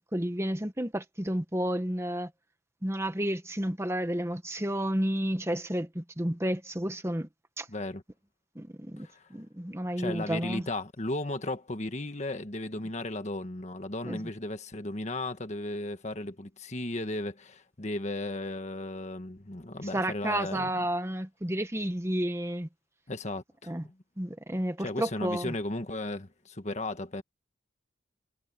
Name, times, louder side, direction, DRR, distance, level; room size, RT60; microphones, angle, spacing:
voice 1, 0.0-2.3 2.8-7.3 7.6-7.7 8.5-10.6 14.0-14.2 19.9-22.7 23.7-23.8 24.2-25.5, right 1 dB, 15° right, 1.1 m, -31 dB
voice 2, 7.7-8.0 9.0-9.2 10.0-20.8 23.1-23.9 24.8-27.2, left 2 dB, 40° left, 1.5 m, -35 dB
head